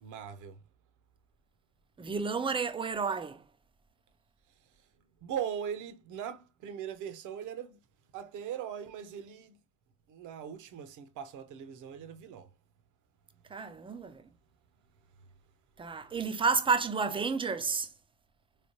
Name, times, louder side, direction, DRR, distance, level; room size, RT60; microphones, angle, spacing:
voice 1, 0.0-0.6 5.2-7.8 8.1-9.6 10.1-12.5, right 9 dB, 45° right, 0.8 m, -40 dB
voice 2, 2.0-3.4 13.5-14.1 15.8-17.9, right 5 dB, 10° right, 0.6 m, -30 dB
4.1 x 3.2 x 2.8 m
figure-of-eight pair, 60°, 43 cm